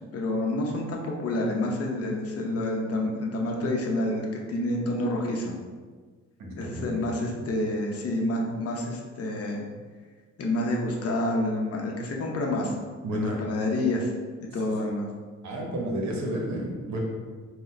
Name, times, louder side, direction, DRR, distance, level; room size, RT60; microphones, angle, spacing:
voice 1, 0.1-5.5 6.6-9.6 10.4-12.7 13.1-14.1 14.4-15.1, left 1 dB, 50° left, 0 dB, 0.8 m, -28 dB
voice 2, 6.4-7.3 13.0-13.4 15.4-17.0, right 1 dB, 65° right, -1 dB, 1.0 m, -32 dB
4.0 x 2.3 x 4.3 m, 1.5 s
cardioid pair, 90°, 30 cm